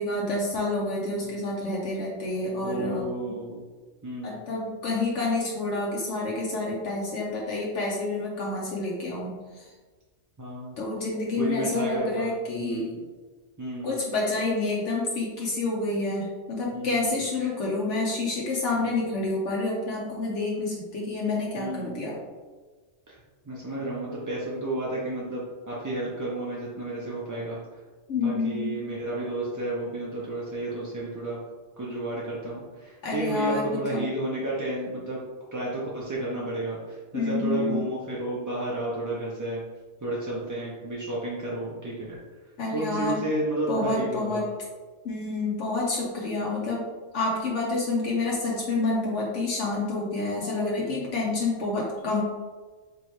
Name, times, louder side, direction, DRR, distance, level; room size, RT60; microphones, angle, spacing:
voice 1, 0.0-3.1 4.2-9.7 10.8-12.9 13.8-22.2 28.1-28.8 33.0-34.0 37.1-37.8 42.6-43.2 43.7-44.5 45.0-46.9 47.1-52.2, left 2 dB, 80° left, -3 dB, 1.0 m, -28 dB
voice 2, 2.6-3.6 4.0-4.4 10.4-10.8 11.4-13.0 13.6-14.0 16.7-17.5 18.8-18.9 21.6-22.1 23.1-23.2 23.4-27.6 28.2-31.4 31.8-35.2 35.5-39.6 40.0-42.2 42.7-44.4 50.8-51.2, right 1 dB, 25° right, -6 dB, 0.4 m, -32 dB
4.3 x 3.1 x 3.0 m, 1.4 s
omnidirectional pair, 1.2 m